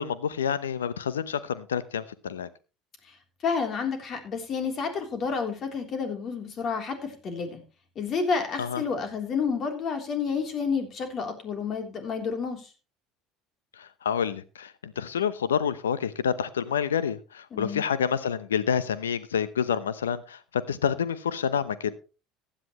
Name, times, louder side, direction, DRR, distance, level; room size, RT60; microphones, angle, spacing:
voice 1, 0.0-2.5 8.6-8.8 13.8-21.9, left 7 dB, 85° left, 16 dB, 0.8 m, -28 dB
voice 2, 3.4-7.6 8.0-12.7 17.5-17.8, left 5 dB, 45° left, 5 dB, 3.4 m, -30 dB
15.5 x 10.0 x 3.1 m, 0.32 s
hypercardioid pair, 70°, 0 cm